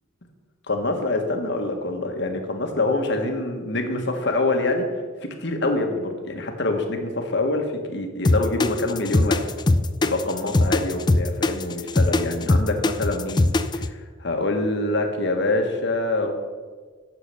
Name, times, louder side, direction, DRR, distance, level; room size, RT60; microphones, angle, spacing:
voice 1, 0.7-4.9 5.4-9.5 10.0-16.3, left 2 dB, 65° left, 4 dB, 1.5 m, -25 dB
sound 1, 8.2-13.9, left 2 dB, 25° left, 0.4 m, -20 dB
10.0 x 7.0 x 6.7 m, 1.5 s
head